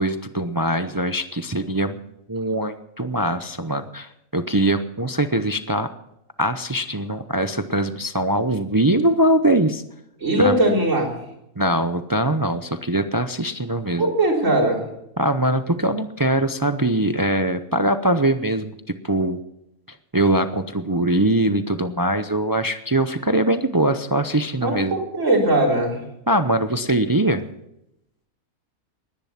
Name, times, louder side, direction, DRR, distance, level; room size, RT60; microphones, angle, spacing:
voice 1, 0.0-2.0 2.3-5.9 6.4-9.8 10.4-10.7 11.6-14.1 15.2-18.7 19.0-19.4 20.1-25.0 26.3-27.5, right 1 dB, 35° right, 9 dB, 0.3 m, -22 dB
voice 2, 10.2-11.1 14.0-14.8 24.6-26.0, right 1 dB, 60° right, -1 dB, 4.3 m, -19 dB
19.5 x 10.5 x 5.8 m, 0.84 s
omnidirectional pair, 1.5 m